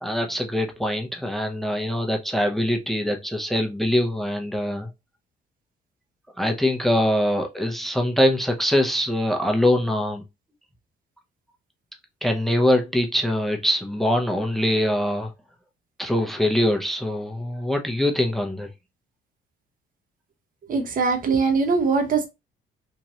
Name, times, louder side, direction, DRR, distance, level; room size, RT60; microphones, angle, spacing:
voice 1, 0.0-4.9 6.4-10.2 12.2-15.3 16.0-18.7, left 1 dB, ahead, 0.6 m, -23 dB
voice 2, 20.7-22.3, right 4 dB, 45° right, 0.7 m, -21 dB
3.1 x 2.5 x 2.7 m
cardioid pair, 90°, 20 cm